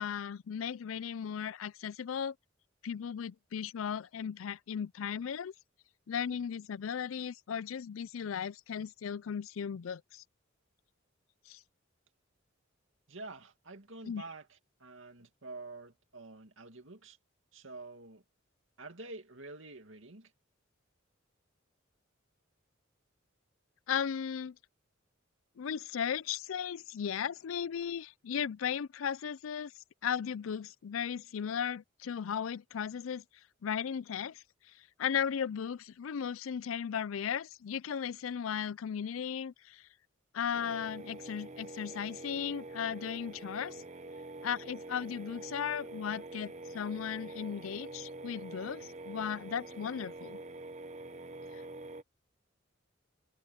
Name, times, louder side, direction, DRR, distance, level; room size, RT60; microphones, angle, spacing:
voice 1, 0.0-2.3 2.8-5.5 6.1-10.2 11.5-11.6 14.1-14.2 23.9-24.5 25.6-29.7 30.0-33.2 33.6-34.4 35.0-39.8 40.3-43.8 44.4-50.4 51.5-51.6, left 8 dB, 85° left, 0.4 m, -36 dB
voice 2, 13.1-17.2 17.5-18.2 18.8-20.3, right 3 dB, 70° right, 2.4 m, -48 dB
sound 1, 40.5-52.0, right 2 dB, 35° right, 0.7 m, -46 dB
head